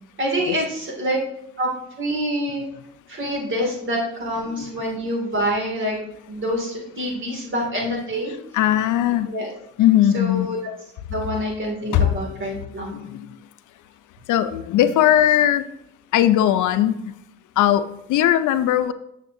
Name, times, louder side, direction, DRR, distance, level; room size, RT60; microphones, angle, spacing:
voice 1, 0.2-1.2 1.6-1.7 2.0-2.6 3.1-6.0 6.3-8.3 9.3-9.5 10.1-10.7 11.1-13.0, equal, 40° right, -1 dB, 2.4 m, -26 dB
voice 2, 8.5-9.3 9.8-10.5 11.9-12.1 12.9-13.3 14.3-15.6 16.1-16.9 17.6-17.8 18.1-18.9, left 11 dB, 80° left, 12 dB, 0.5 m, -18 dB
7.4 x 6.5 x 2.7 m, 0.78 s
cardioid pair, 90°, 30 cm